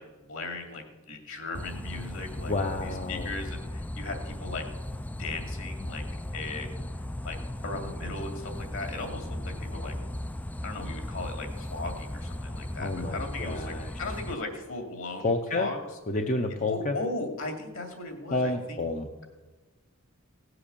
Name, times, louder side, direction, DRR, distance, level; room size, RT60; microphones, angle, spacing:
voice 1, 0.0-4.6 5.2-6.0 6.3-6.7 7.2-7.4 7.6-9.9 10.6-15.8 16.7-18.8, left 3 dB, 60° left, 4 dB, 2.5 m, -37 dB
sound 1, 1.5-14.4, left 1 dB, 5° left, 0.3 m, -37 dB
voice 2, 2.4-3.3 12.8-14.0 15.2-15.7 16.1-17.0 18.3-19.2, left 2 dB, 35° left, 5 dB, 0.7 m, -30 dB
17.0 x 7.8 x 6.9 m, 1.2 s
head